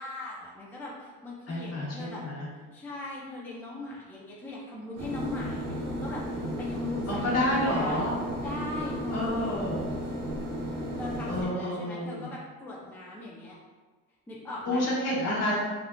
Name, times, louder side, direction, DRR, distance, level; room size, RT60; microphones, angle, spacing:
voice 1, 0.0-2.2 2.7-8.0 8.4-9.6 11.0-13.5 14.3-14.9, left 2 dB, 5° left, -5 dB, 0.4 m, -39 dB
voice 2, 1.5-2.5 7.1-8.1 9.1-9.8 11.3-12.3 14.6-15.5, left 1 dB, 55° left, -5 dB, 1.1 m, -29 dB
sound 1, 5.0-11.5, equal, 75° right, 0.9 m, -34 dB
3.6 x 2.4 x 2.2 m, 1.4 s
cardioid pair, 105°, 31 cm